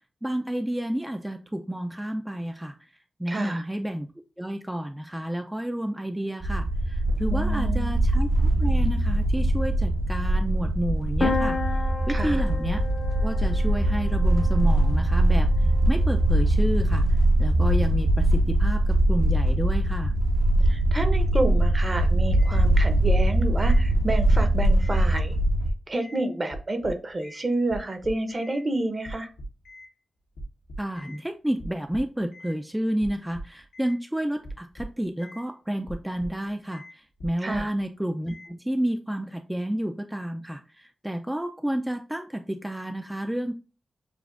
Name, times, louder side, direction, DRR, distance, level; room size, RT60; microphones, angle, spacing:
voice 1, 0.2-2.8 3.2-4.1 4.4-12.8 13.2-20.1 30.8-43.5, right 1 dB, 10° right, 5 dB, 0.4 m, -30 dB
voice 2, 3.3-3.6 7.3-7.9 12.1-12.4 20.7-25.4 25.9-29.3 37.4-37.7, right 2 dB, 40° right, 7 dB, 0.9 m, -29 dB
sound 1, 6.4-25.7, right 1 dB, 75° right, 1.0 m, -22 dB
sound 2, 11.2-14.9, left 4 dB, 45° left, 0.6 m, -32 dB
sound 3, 22.4-22.6 23.0-23.8 24.1-25.0 25.3-26.2 26.5-27.4 27.7-28.6 29.0-29.9 30.4-31.2 31.6-32.6 33.0-34.0 34.4-35.4 35.8-36.5 36.7-36.9 37.2-37.8 38.3-38.5, right 1 dB, 85° left, 1.0 m, -41 dB
7.0 x 2.5 x 2.5 m, 0.35 s
cardioid pair, 50°, 0 cm